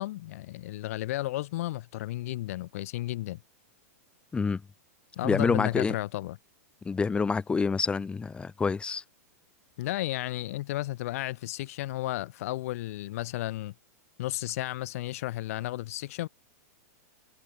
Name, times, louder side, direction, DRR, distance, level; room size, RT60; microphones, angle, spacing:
voice 1, 0.0-3.4 5.2-6.4 9.8-13.7 14.2-16.3, left 16 dB, 60° left, 2.6 m, -33 dB
voice 2, 5.2-5.9 6.8-9.0, left 5 dB, 10° left, 6.0 m, -27 dB
hypercardioid pair, 145°, 9 cm